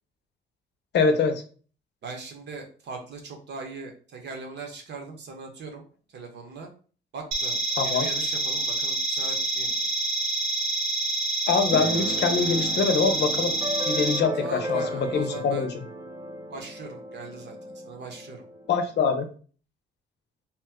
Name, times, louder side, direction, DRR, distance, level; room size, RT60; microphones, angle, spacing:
voice 1, 0.9-1.4 7.8-8.1 11.5-13.5 13.8-15.7 18.7-19.3, left 5 dB, 60° left, 6 dB, 0.7 m, -24 dB
voice 2, 2.0-5.8 6.1-6.7 7.1-9.9 14.4-15.7 16.5-18.4, right 4 dB, 60° right, 3 dB, 1.0 m, -40 dB
sound 1, 7.3-14.2, right 2 dB, 85° right, 0.8 m, -27 dB
Keyboard (musical), 11.7-19.2, equal, 15° right, 0.5 m, -35 dB
2.9 x 2.2 x 3.5 m, 0.40 s
cardioid pair, 90°, 20 cm